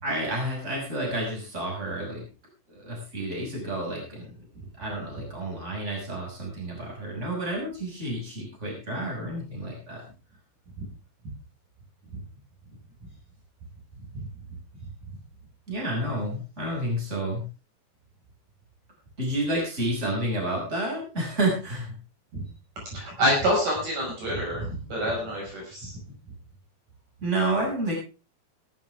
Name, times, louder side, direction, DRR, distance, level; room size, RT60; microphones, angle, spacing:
voice 1, 0.0-2.2 2.7-4.3 4.8-10.0 15.7-17.4 19.2-21.9 27.2-27.9, right 1 dB, 15° right, -1 dB, 6.6 m, -30 dB
voice 2, 22.9-25.9, equal, 55° right, -2 dB, 7.1 m, -27 dB
17.0 x 13.5 x 3.5 m, 0.33 s
omnidirectional pair, 4.3 m